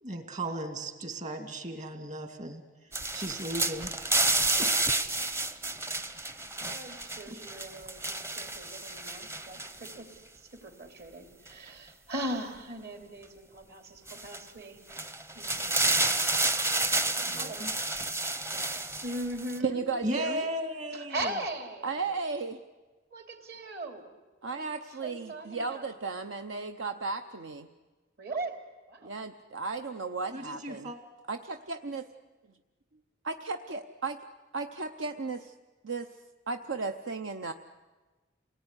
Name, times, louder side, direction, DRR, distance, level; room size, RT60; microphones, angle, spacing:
voice 1, 0.0-4.2 4.6-4.7 7.3-7.4 17.3-17.7 20.0-21.3 30.3-31.0, right 1 dB, 40° right, 6 dB, 2.4 m, -36 dB
sound 1, 2.9-9.9 11.5-11.6 14.1-14.4 14.9-19.6, right 2 dB, 15° right, 0.7 m, -30 dB
voice 2, 6.3-10.1 10.4-14.8 15.3-16.3 16.9-17.7 19.0-19.8 20.9-22.1 23.1-24.1 24.4-24.6 25.0-25.8 28.2-28.5 28.9-29.1, right 1 dB, 55° right, 5 dB, 3.0 m, -39 dB
voice 3, 19.6-20.5 21.8-22.6 24.4-27.7 29.0-30.9 31.3-32.1 33.2-34.2 34.5-35.5 35.8-36.1 36.5-37.5, right 4 dB, 80° right, 6 dB, 0.8 m, -35 dB
27.5 x 18.5 x 9.8 m, 1.2 s
head